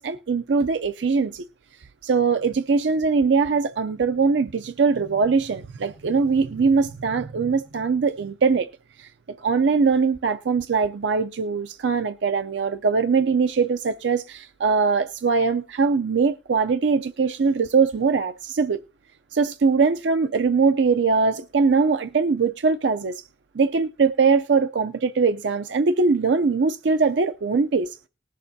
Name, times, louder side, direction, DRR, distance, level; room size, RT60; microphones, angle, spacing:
voice 1, 0.0-1.4 2.0-8.7 9.0-9.1 9.4-18.8 19.3-23.1 23.5-27.9, right 4 dB, 70° right, 0.5 m, -21 dB
19.5 x 6.6 x 2.7 m
head